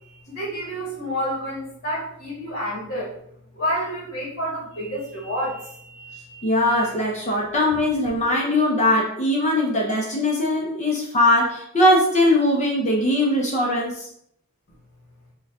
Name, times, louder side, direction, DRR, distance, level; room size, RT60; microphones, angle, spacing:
voice 1, 0.0-3.1 3.5-6.9, equal, 45° left, -4 dB, 1.3 m, -30 dB
voice 2, 6.4-14.1, left 1 dB, 30° left, -2 dB, 0.7 m, -20 dB
5.0 x 2.3 x 3.6 m, 0.70 s
head